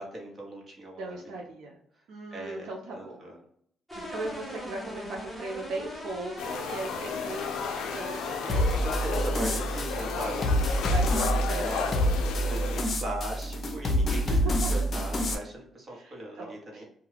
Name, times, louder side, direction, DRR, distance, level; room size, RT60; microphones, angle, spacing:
voice 1, 0.0-1.2 2.3-3.4 8.4-10.9 11.5-16.9, right 1 dB, 40° right, -2 dB, 1.1 m, -39 dB
voice 2, 1.0-1.8 2.1-3.2 3.9-9.1 10.9-12.3 14.1-14.9 15.9-16.8, right 2 dB, 85° right, -1 dB, 0.6 m, -38 dB
sound 1, 3.9-12.8, equal, 5° right, 1.0 m, -44 dB
sound 2, 6.4-12.8, left 6 dB, 90° left, 0.3 m, -33 dB
sound 3, 8.5-15.3, equal, 40° left, 0.6 m, -27 dB
2.3 x 2.2 x 3.3 m, 0.67 s
cardioid pair, 90°, 0 cm